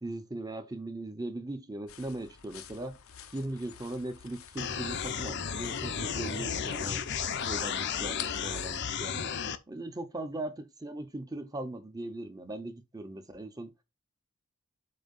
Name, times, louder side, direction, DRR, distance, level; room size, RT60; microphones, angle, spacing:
voice 1, 0.0-3.0 3.3-7.0 7.4-9.4 9.7-13.7, right 1 dB, 20° right, 0.9 m, -39 dB
sound 1, 1.9-8.8, left 9 dB, 85° left, 0.8 m, -49 dB
sound 2, 4.6-9.6, left 7 dB, 55° left, 0.7 m, -33 dB
7.8 x 2.9 x 5.5 m
head